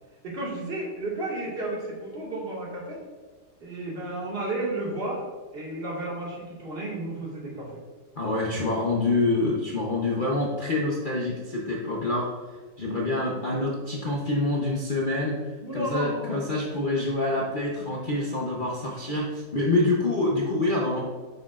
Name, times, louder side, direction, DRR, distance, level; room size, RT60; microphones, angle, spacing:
voice 1, 0.2-3.0 3.6-5.3 5.5-7.8 15.6-16.4, right 1 dB, 35° right, -5 dB, 2.0 m, -32 dB
voice 2, 8.1-12.4 12.8-15.4 15.7-21.2, left 2 dB, 40° left, -3 dB, 0.7 m, -26 dB
9.4 x 6.1 x 2.4 m, 1.4 s
omnidirectional pair, 1.9 m